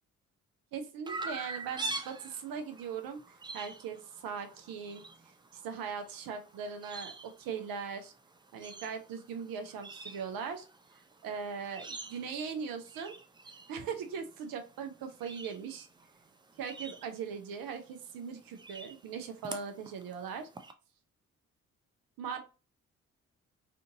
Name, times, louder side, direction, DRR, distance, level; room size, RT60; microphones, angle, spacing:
voice 1, 0.7-3.2 3.5-8.1 8.5-10.7 11.2-13.2 13.7-15.9 16.6-20.5 22.2-22.4, right 6 dB, 60° right, 6 dB, 0.6 m, -40 dB
Chirp tweet, 1.1-20.7, right 2 dB, 10° right, 0.4 m, -46 dB
2.5 x 2.5 x 2.7 m, 0.34 s
hypercardioid pair, 40°, 39 cm